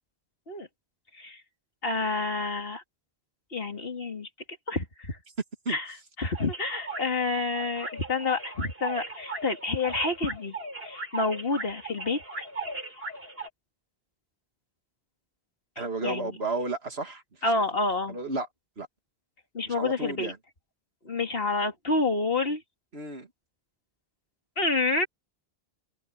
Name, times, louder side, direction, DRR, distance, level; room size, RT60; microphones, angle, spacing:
voice 1, 1.8-2.8 3.5-4.3 4.7-5.2 5.7-10.6 10.8-12.4 16.0-16.4 17.4-18.2 19.5-20.3 21.0-22.6 24.6-25.1, left 3 dB, 70° left, 3.0 m, -29 dB
sound 1, 6.3-13.5, right 2 dB, 70° right, 6.1 m, -38 dB
voice 2, 15.8-17.5 18.1-18.5 18.8-18.9 19.7-20.4 22.9-23.3, right 2 dB, 85° right, 2.6 m, -33 dB
omnidirectional pair, 1.0 m